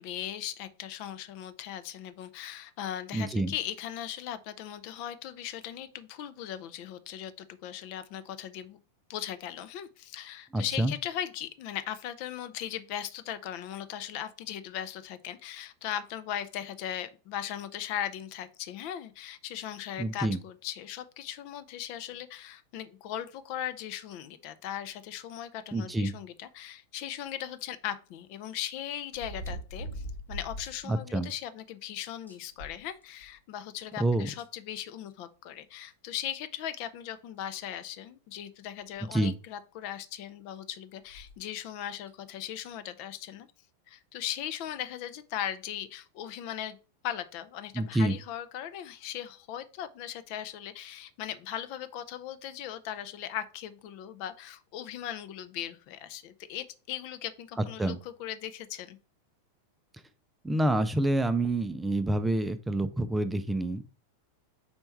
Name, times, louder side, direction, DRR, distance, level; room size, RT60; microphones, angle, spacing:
voice 1, 0.0-8.8 9.1-43.5 43.9-46.8 47.0-59.0, left 11 dB, 45° left, 0.6 m, -38 dB
voice 2, 3.1-3.5 10.5-10.9 20.0-20.4 25.7-26.1 30.9-31.3 34.0-34.3 39.1-39.3 47.7-48.2 57.8-58.0 60.4-63.9, right 1 dB, 10° right, 0.5 m, -27 dB
sound 1, 27.2-27.3 29.1-30.8 31.2-31.3 31.8-31.9 32.3-33.4 34.4-34.5 35.9-36.0 36.6-36.7 37.4-37.6 38.9-39.0 39.3-39.4 41.1-41.4 42.1-42.2, equal, 80° left, 1.3 m, -41 dB
4.4 x 4.3 x 5.4 m
figure-of-eight pair, 90°, 0 cm